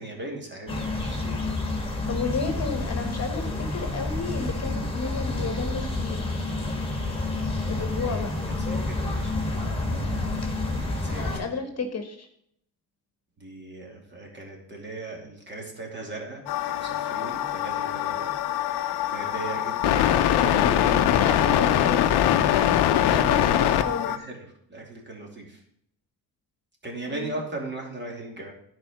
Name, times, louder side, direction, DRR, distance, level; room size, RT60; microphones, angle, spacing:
voice 1, 0.0-1.5 8.0-9.6 10.6-11.4 13.4-18.3 19.1-21.5 23.5-25.6 26.8-28.5, right 2 dB, 30° right, 0 dB, 2.8 m, -38 dB
sound 1, 0.7-11.4, left 2 dB, 15° left, 2.3 m, -29 dB
voice 2, 2.1-6.3 7.7-8.3 11.0-12.3 21.0-22.0 22.9-24.1 27.1-27.3, left 4 dB, 40° left, 6 dB, 1.4 m, -32 dB
sound 2, 16.5-24.2, left 11 dB, 85° left, 0.8 m, -23 dB
10.5 x 4.7 x 6.0 m, 0.73 s
cardioid pair, 90°, 39 cm